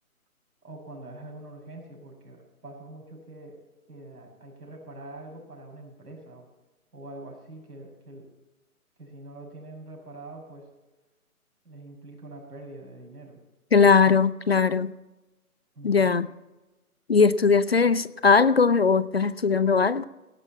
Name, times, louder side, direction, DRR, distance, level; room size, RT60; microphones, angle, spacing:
voice 1, 0.6-3.6 3.9-6.5 6.9-8.3 9.0-10.7 11.6-13.4 15.7-16.2, right 2 dB, 85° right, 6.1 m, -44 dB
voice 2, 13.7-14.9 15.8-16.3 17.1-20.1, left 5 dB, 45° left, 0.4 m, -20 dB
17.5 x 6.0 x 8.1 m
hypercardioid pair, 155°, 45 cm